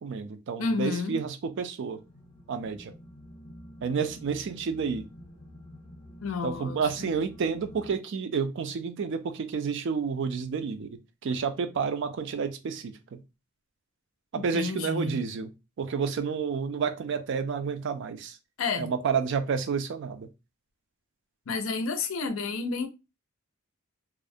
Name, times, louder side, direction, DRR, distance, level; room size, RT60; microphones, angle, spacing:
voice 1, 0.0-2.0 2.5-2.9 3.8-5.1 6.4-11.0 11.2-13.2 14.3-15.5 15.8-18.4 18.8-20.3, right 5 dB, 60° right, 0.4 m, -30 dB
voice 2, 0.6-1.2 6.2-6.8 14.3-15.2 18.6-18.9 21.5-22.9, left 4 dB, 75° left, 0.5 m, -30 dB
sound 1, 1.9-8.0, equal, 30° left, 0.6 m, -49 dB
2.4 x 2.0 x 2.6 m
head